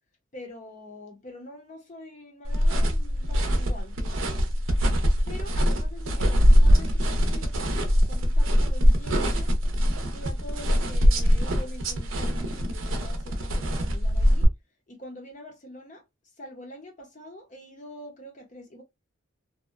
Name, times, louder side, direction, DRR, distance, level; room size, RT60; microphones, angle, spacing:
voice 1, 0.3-4.4 5.3-9.5 10.1-14.5 14.9-16.0 16.4-18.8, left 1 dB, 35° left, 0.6 m, -44 dB
sound 1, 2.4-14.4, equal, 75° right, 0.6 m, -22 dB
2.7 x 2.1 x 2.3 m
head